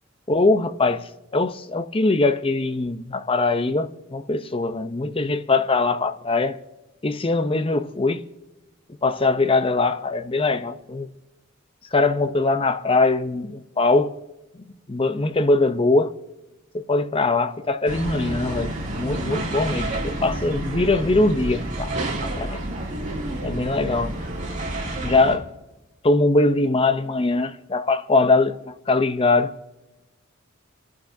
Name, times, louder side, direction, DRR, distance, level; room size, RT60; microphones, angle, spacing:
voice 1, 0.3-6.6 7.0-8.2 9.0-11.1 11.9-14.2 14.9-16.1 16.7-21.9 22.2-22.6 23.4-24.1 25.0-25.5 26.0-29.5, left 3 dB, 25° left, 0.7 m, -22 dB
sound 1, 17.9-25.4, right 1 dB, 40° right, 2.6 m, -29 dB
29.5 x 11.5 x 2.7 m
head